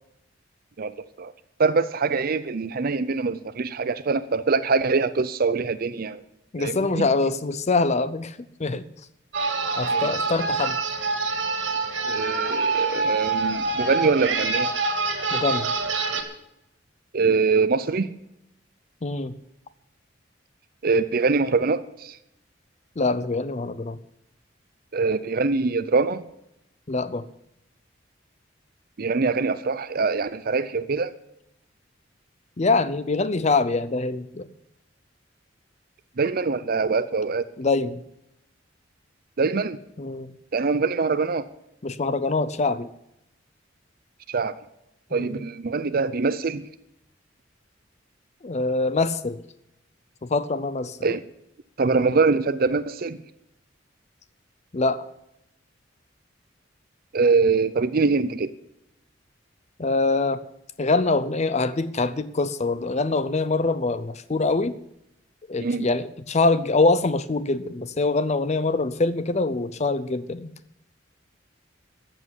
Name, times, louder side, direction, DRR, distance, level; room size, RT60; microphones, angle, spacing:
voice 1, 0.8-1.3 1.6-6.2 6.6-7.1 9.9-10.1 12.1-14.7 17.1-18.1 20.8-22.2 24.9-26.2 29.0-31.1 36.2-37.4 39.4-39.8 40.5-41.5 44.3-44.6 45.1-46.6 51.0-51.2 51.8-53.2 57.1-58.5 65.6-65.9, right 4 dB, 50° right, 13 dB, 0.6 m, -23 dB
voice 2, 6.5-8.8 9.4-10.8 15.3-15.7 19.0-19.3 23.0-24.0 26.9-27.3 32.6-34.5 37.6-38.0 40.0-40.3 41.8-42.9 45.1-45.4 48.4-49.4 50.2-51.2 54.7-55.0 59.8-60.4 60.8-64.7 65.5-70.5, left 3 dB, 35° left, 14 dB, 0.6 m, -24 dB
sound 1, 9.3-16.2, right 4 dB, 80° right, 2.6 m, -26 dB
13.5 x 7.5 x 9.9 m, 0.83 s
head